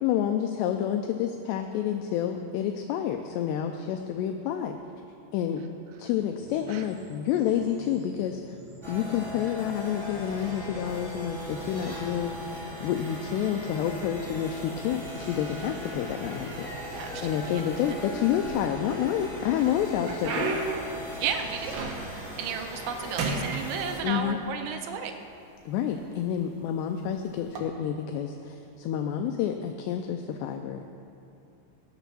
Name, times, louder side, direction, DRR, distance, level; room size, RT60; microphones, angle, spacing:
voice 1, 0.0-4.8 5.3-5.6 6.0-8.4 8.9-12.3 12.8-16.7 17.2-20.6 24.0-24.4 25.7-31.0, left 9 dB, 80° left, 5 dB, 2.5 m, -29 dB
sound 1, 6.4-15.4, right 3 dB, 45° right, 3.2 m, -50 dB
sound 2, 8.8-24.0, equal, 20° right, 2.8 m, -39 dB
voice 2, 16.9-17.6 21.2-21.9 22.4-25.2, right 7 dB, 90° right, 5 dB, 3.1 m, -33 dB
sound 3, 18.3-19.1 19.5-22.3 22.6-22.9 23.2-24.4 25.2-25.3 26.0-26.2 27.4-27.6, right 3 dB, 65° right, 2.6 m, -33 dB
18.5 x 6.9 x 6.1 m, 2.7 s
omnidirectional pair, 5.2 m